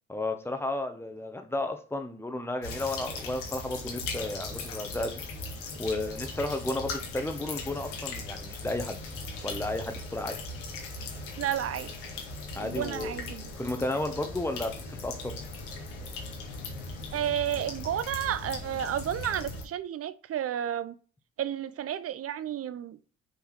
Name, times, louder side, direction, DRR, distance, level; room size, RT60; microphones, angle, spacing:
voice 1, 0.1-5.2 5.8-9.0 9.4-10.4 12.5-13.2 13.6-15.3, left 2 dB, 5° left, 1.5 m, -33 dB
sound 1, 2.6-19.6, left 3 dB, 65° left, 2.2 m, -39 dB
voice 2, 11.4-11.9 12.6-13.5 17.1-20.9 21.4-23.0, right 10 dB, 40° right, 0.8 m, -32 dB
7.4 x 5.7 x 6.0 m
figure-of-eight pair, 45°, 35 cm